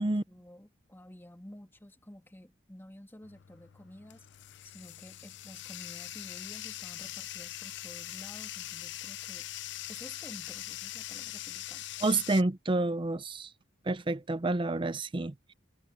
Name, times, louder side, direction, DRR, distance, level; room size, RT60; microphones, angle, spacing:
voice 1, 0.0-4.3 4.6-9.5 9.9-12.5 12.7-12.8, left 1 dB, 10° left, 2.7 m, -51 dB
Bathtub (filling or washing), 3.2-12.4, left 14 dB, 70° left, 0.5 m, -42 dB
voice 2, 12.0-13.5 13.9-15.5, right 2 dB, 25° right, 0.6 m, -29 dB
head